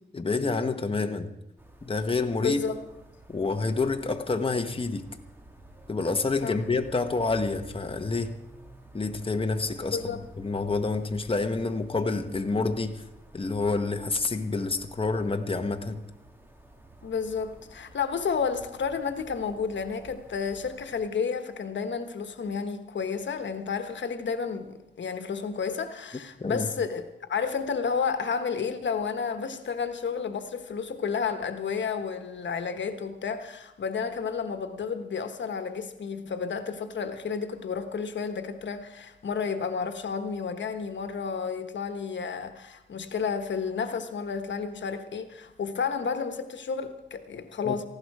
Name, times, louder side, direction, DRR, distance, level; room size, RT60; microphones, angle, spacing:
voice 1, 0.1-1.3 1.8-2.6 3.3-5.1 5.9-8.4 8.9-13.0 13.3-16.0 26.4-26.7 47.6-47.8, left 3 dB, 30° left, 6 dB, 1.2 m, -28 dB
sound 1, 1.6-21.0, right 1 dB, 10° right, 2.2 m, -52 dB
voice 2, 2.4-2.8 6.4-6.6 9.9-10.2 17.0-47.9, left 6 dB, 80° left, 8 dB, 1.3 m, -31 dB
18.5 x 15.5 x 4.8 m, 0.88 s
wide cardioid pair, 85°, 19 cm